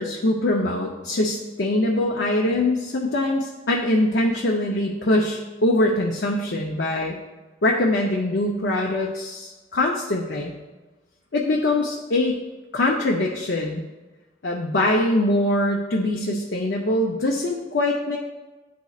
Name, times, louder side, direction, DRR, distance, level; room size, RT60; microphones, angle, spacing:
voice 1, 0.0-7.2 7.6-10.5 11.3-12.4 12.7-13.8 14.4-18.2, left 1 dB, 65° left, -1 dB, 0.6 m, -23 dB
10.0 x 4.1 x 2.4 m, 1.2 s
head